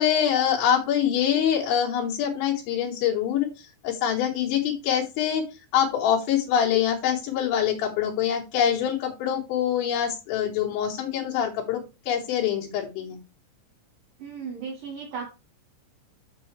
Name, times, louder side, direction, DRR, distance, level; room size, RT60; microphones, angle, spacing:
voice 1, 0.0-3.5 3.8-5.4 5.7-13.2, left 9 dB, 80° left, -3 dB, 3.7 m, -24 dB
voice 2, 14.2-15.3, right 6 dB, 65° right, 0 dB, 2.4 m, -35 dB
8.2 x 6.9 x 3.2 m, 0.29 s
omnidirectional pair, 5.5 m